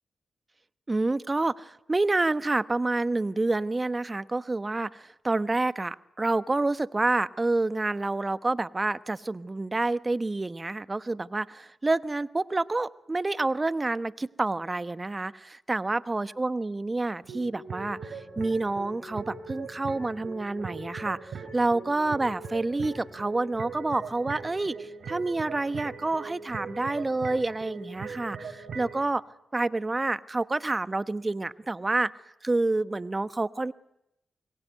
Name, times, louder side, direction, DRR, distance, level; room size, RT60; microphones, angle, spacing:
voice 1, 0.9-29.2 29.5-32.1 32.4-33.7, right 2 dB, 30° right, 15 dB, 1.0 m, -28 dB
sound 1, 17.2-29.0, right 5 dB, 75° right, 3.9 m, -40 dB
25.5 x 22.0 x 9.3 m, 0.86 s
supercardioid pair, 40°, 0 cm